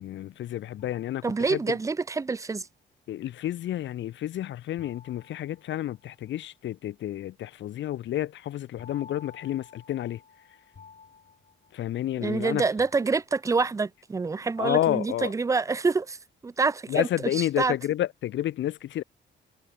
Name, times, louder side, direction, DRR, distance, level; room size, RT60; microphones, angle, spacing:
voice 1, 0.0-1.2 1.5-1.8 3.1-10.2 11.7-12.6 14.6-15.3 16.9-19.0, left 12 dB, 70° left, 1.0 m, -30 dB
sound 1, 0.8-2.0 4.8-6.4 8.8-12.4 12.8-13.7, left 6 dB, 40° left, 4.3 m, -53 dB
voice 2, 1.2-2.7 12.2-16.2 16.4-17.7, right 4 dB, 15° right, 0.4 m, -27 dB
cardioid pair, 90°, 20 cm